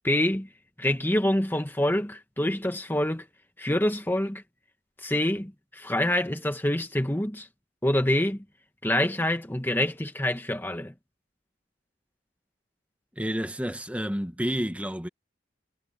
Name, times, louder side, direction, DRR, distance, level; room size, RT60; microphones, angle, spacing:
voice 1, 0.0-0.5 0.8-3.3 3.6-4.4 5.0-7.5 7.8-8.4 8.8-10.9, left 1 dB, 10° left, 1.4 m, -26 dB
voice 2, 13.2-15.1, equal, 10° right, 1.7 m, -30 dB
head